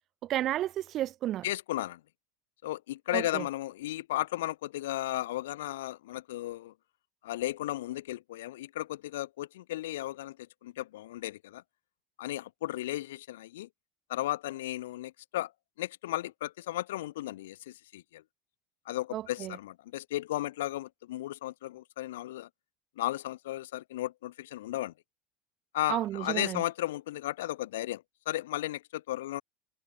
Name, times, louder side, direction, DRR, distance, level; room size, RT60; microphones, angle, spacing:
voice 1, 0.2-1.4 3.1-3.5 19.1-19.6 25.9-26.6, right 13 dB, 45° right, 1.6 m, -32 dB
voice 2, 1.4-2.0 2.6-6.7 7.2-10.4 10.6-11.6 12.2-13.7 14.1-15.5 15.8-18.2 18.9-22.5 23.0-24.9 25.7-29.4, left 15 dB, 90° left, 2.3 m, -35 dB
supercardioid pair, 110°, 0 cm